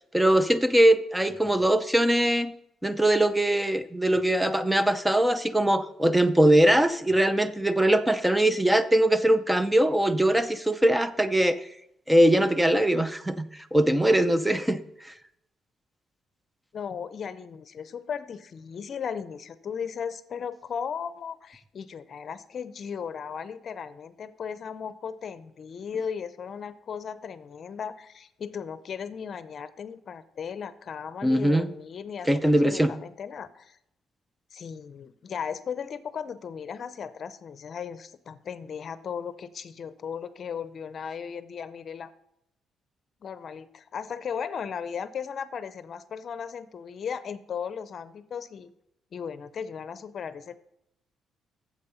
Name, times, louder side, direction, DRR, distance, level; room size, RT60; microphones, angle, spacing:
voice 1, 0.1-2.5 2.8-11.6 12.1-14.8 31.2-31.7 32.3-32.9, right 1 dB, 10° right, 12 dB, 0.6 m, -22 dB
voice 2, 16.7-33.8 34.5-42.1 43.2-48.7 49.1-50.6, left 7 dB, 55° left, 14 dB, 0.6 m, -36 dB
8.5 x 7.5 x 5.6 m, 0.79 s
cardioid pair, 90°, 0 cm